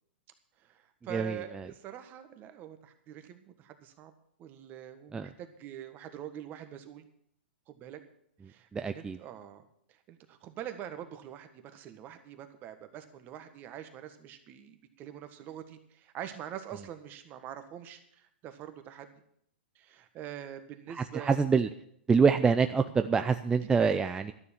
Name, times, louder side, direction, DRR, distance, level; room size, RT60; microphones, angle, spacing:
voice 1, 0.6-4.1 4.4-7.1 7.7-8.0 8.5-9.6 9.9-19.1 19.7-21.4 23.9-24.0, right 10 dB, 30° right, 8 dB, 1.5 m, -44 dB
voice 2, 8.7-9.2 21.0-21.7 22.1-24.3, right 5 dB, 10° right, 8 dB, 0.5 m, -26 dB
12.5 x 6.9 x 8.6 m, 0.69 s
hypercardioid pair, 135°, 6 cm